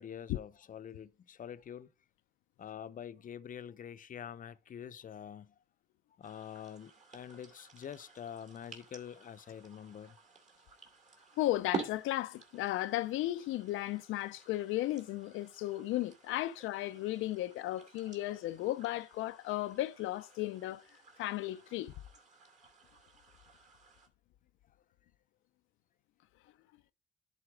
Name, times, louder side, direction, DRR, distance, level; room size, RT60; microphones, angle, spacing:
voice 1, 0.0-1.9 2.6-5.5 6.2-10.2, left 9 dB, 45° left, 0.6 m, -46 dB
sound 1, 6.2-24.1, right 5 dB, 40° right, 2.4 m, -50 dB
voice 2, 11.4-20.8 21.2-21.9, left 15 dB, 90° left, 0.5 m, -35 dB
10.5 x 4.2 x 4.9 m
cardioid pair, 90°, 20 cm